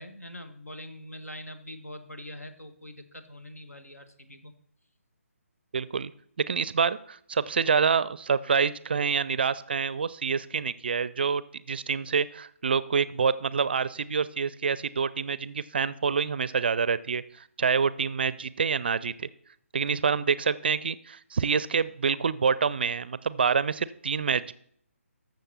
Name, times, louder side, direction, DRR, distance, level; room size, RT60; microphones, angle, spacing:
voice 1, 0.0-4.5, left 1 dB, 85° left, 8 dB, 1.5 m, -43 dB
voice 2, 5.7-6.1 6.4-11.4 11.7-19.1 19.7-24.5, right 6 dB, 40° right, 18 dB, 0.4 m, -27 dB
14.5 x 6.5 x 4.2 m, 0.66 s
figure-of-eight pair, 145°, 8 cm